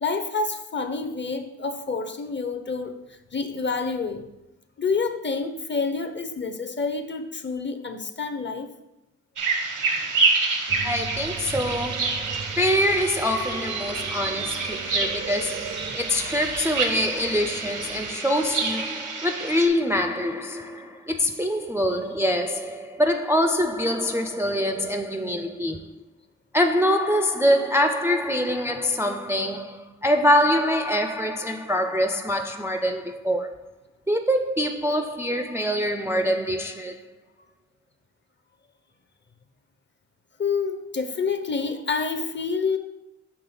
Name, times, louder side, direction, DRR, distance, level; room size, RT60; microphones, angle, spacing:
voice 1, 0.0-3.0 3.3-4.3 4.8-8.7 40.4-42.8, left 4 dB, 35° left, 0.6 m, -28 dB
sound 1, 9.4-19.7, right 4 dB, 85° right, 0.9 m, -28 dB
sound 2, 10.7-18.1, right 6 dB, 60° right, 0.5 m, -36 dB
voice 2, 10.8-26.0 26.5-33.5 34.1-37.0, equal, 10° right, 0.3 m, -24 dB
5.9 x 3.4 x 5.4 m
wide cardioid pair, 80°, 30 cm